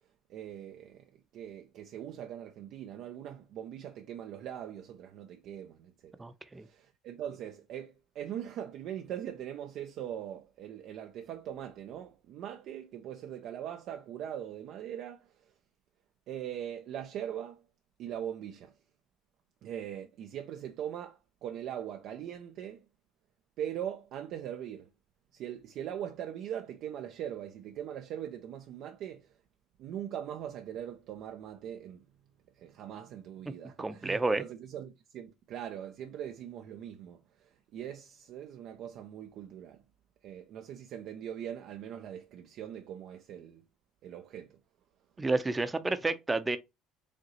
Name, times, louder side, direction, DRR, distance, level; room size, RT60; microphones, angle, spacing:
voice 1, 0.3-6.2 6.6-15.5 16.3-17.6 18.0-18.7 19.6-22.9 23.6-24.9 25.3-29.3 29.8-32.1 32.5-39.8 40.2-43.6 44.0-44.6, right 10 dB, 65° right, 0.4 m, -41 dB
voice 2, 6.2-6.7 33.8-34.4 45.2-46.6, right 3 dB, 20° right, 0.6 m, -30 dB
5.0 x 2.7 x 3.0 m
supercardioid pair, 75°, 0 cm